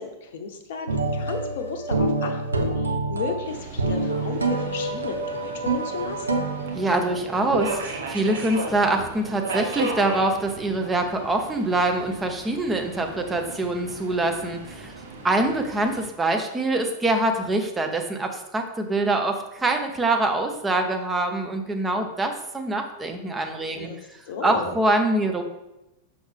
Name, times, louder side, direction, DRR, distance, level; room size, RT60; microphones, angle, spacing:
voice 1, 0.0-6.4 23.7-24.0 24.3-24.7, left 5 dB, 55° left, 6 dB, 0.8 m, -34 dB
sound 1, 0.9-7.7, right 2 dB, 80° right, 0.6 m, -27 dB
Subway metro underground, 3.4-16.1, right 3 dB, 60° right, 1.1 m, -36 dB
voice 2, 6.8-14.9 15.2-23.9 24.4-25.4, right 2 dB, 10° right, 4 dB, 0.8 m, -24 dB
6.2 x 5.5 x 3.4 m, 0.92 s
figure-of-eight pair, 90°, 0 cm